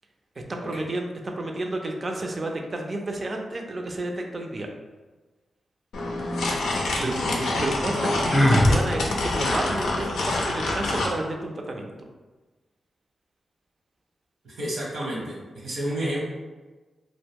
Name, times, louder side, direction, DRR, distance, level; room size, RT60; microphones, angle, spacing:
voice 1, 0.5-4.7 7.0-7.2 7.6-11.9, right 2 dB, 50° right, 2 dB, 0.4 m, -31 dB
sound 1, 5.9-11.2, left 2 dB, 85° left, 0.4 m, -26 dB
voice 2, 7.0-7.5 7.9-8.1 14.4-16.2, right 1 dB, 80° right, -5 dB, 1.0 m, -31 dB
Sigh, 8.3-8.8, equal, 5° left, 0.4 m, -18 dB
2.2 x 2.1 x 3.5 m, 1.2 s
supercardioid pair, 45°, 0 cm